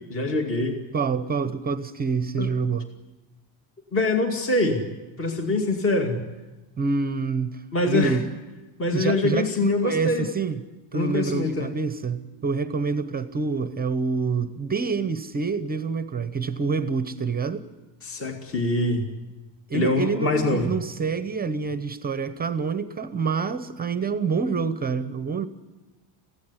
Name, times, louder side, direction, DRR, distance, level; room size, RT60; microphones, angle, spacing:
voice 1, 0.1-0.8 2.4-2.5 3.9-4.8 5.2-6.2 7.7-8.2 8.8-10.3 10.9-11.7 18.0-19.0 19.7-20.7, left 2 dB, 30° left, 2.3 m, -24 dB
voice 2, 0.9-2.9 6.8-8.3 8.9-10.6 10.9-17.6 19.7-25.5, right 5 dB, 20° right, 0.8 m, -27 dB
23.0 x 16.0 x 9.7 m
cardioid pair, 145°, 45 cm